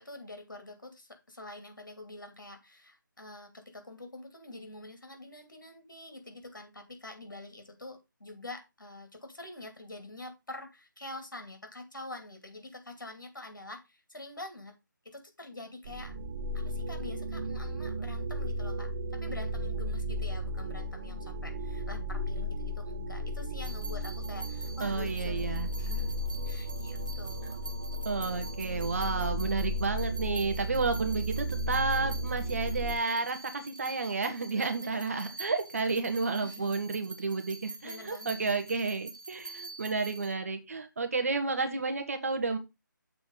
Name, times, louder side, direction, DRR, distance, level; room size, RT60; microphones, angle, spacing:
voice 1, 0.0-14.7 15.0-16.1 16.5-27.6 34.5-35.4 36.4-36.8 37.8-38.6, left 2 dB, 70° left, 5 dB, 2.6 m, -46 dB
sound 1, 15.9-33.0, equal, 25° right, 0.5 m, -34 dB
sound 2, 23.6-40.3, right 4 dB, 70° right, 1.9 m, -46 dB
voice 2, 24.8-25.7 28.0-42.6, right 3 dB, 45° right, 6 dB, 1.3 m, -31 dB
7.0 x 4.2 x 5.4 m, 0.24 s
figure-of-eight pair, 155°, 11 cm